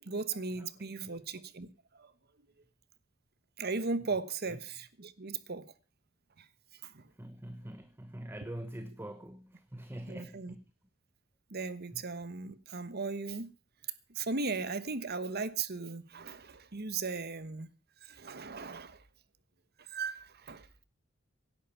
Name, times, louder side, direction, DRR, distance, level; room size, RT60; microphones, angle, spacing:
voice 1, 0.0-1.7 1.9-2.1 3.6-5.7 6.4-6.5 6.8-7.1 8.4-8.5 10.1-10.5 11.5-13.5 14.1-17.7 18.0-19.0 19.9-20.7, right 4 dB, 50° right, 1.2 m, -37 dB
voice 2, 7.2-10.5 11.9-12.0, right 1 dB, 10° right, 0.9 m, -44 dB
17.5 x 11.0 x 5.7 m
head